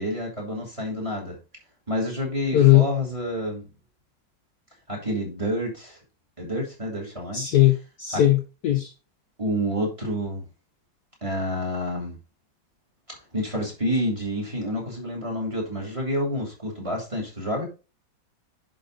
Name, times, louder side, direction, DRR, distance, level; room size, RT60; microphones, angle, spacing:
voice 1, 0.0-1.4 1.9-3.7 4.9-6.0 6.4-7.4 8.1-8.2 9.4-10.4 11.2-12.2 13.1-17.7, equal, 15° right, 2.8 m, -28 dB
voice 2, 2.5-2.9 7.3-8.9, left 14 dB, 65° left, 1.1 m, -18 dB
10.5 x 4.3 x 3.9 m
omnidirectional pair, 2.1 m